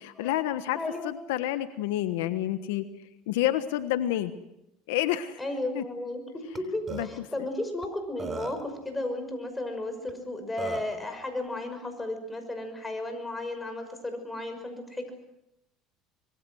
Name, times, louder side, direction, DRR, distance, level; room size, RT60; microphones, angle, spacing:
voice 1, 0.2-0.8 1.0-2.8 3.3-4.3 4.9-5.4 5.7-5.8 6.9-7.1, left 13 dB, 85° left, 10 dB, 1.3 m, -28 dB
voice 2, 0.7-1.1 5.4-15.1, left 2 dB, 10° left, 6 dB, 5.9 m, -34 dB
Burping eructation, 6.5-6.6 6.9-7.1 7.8-7.9 8.2-8.7 10.1-10.2 10.6-10.9, right 5 dB, 30° right, 3.3 m, -36 dB
25.5 x 22.5 x 6.4 m, 0.85 s
supercardioid pair, 110°, 0 cm